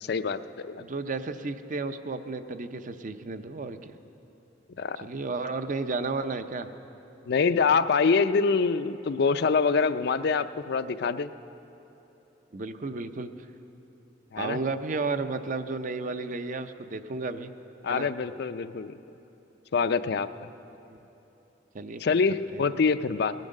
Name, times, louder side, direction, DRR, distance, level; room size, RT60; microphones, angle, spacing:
voice 1, 0.0-0.8 4.8-5.1 7.3-11.3 14.3-14.6 17.8-19.0 19.7-20.3 22.0-23.3, left 5 dB, 60° left, 12 dB, 0.4 m, -25 dB
voice 2, 0.8-3.9 5.0-6.7 12.5-13.3 14.4-17.5 17.9-18.1 21.7-22.0 22.5-22.6, right 3 dB, 45° right, 10 dB, 0.6 m, -33 dB
18.5 x 10.5 x 6.5 m, 3.0 s
head